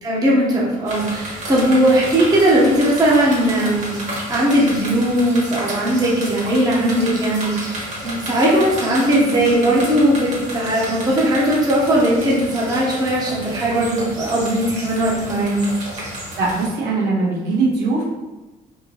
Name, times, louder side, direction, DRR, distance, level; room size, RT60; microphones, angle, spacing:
voice 1, 0.0-4.0 4.3-15.7, right 1 dB, 25° right, -5 dB, 0.9 m, -18 dB
sound 1, 0.8-16.7, right 1 dB, 45° right, 1.5 m, -31 dB
voice 2, 16.3-18.0, right 3 dB, 85° right, -6 dB, 1.4 m, -20 dB
3.6 x 2.7 x 2.9 m, 1.1 s
cardioid pair, 110°, 17 cm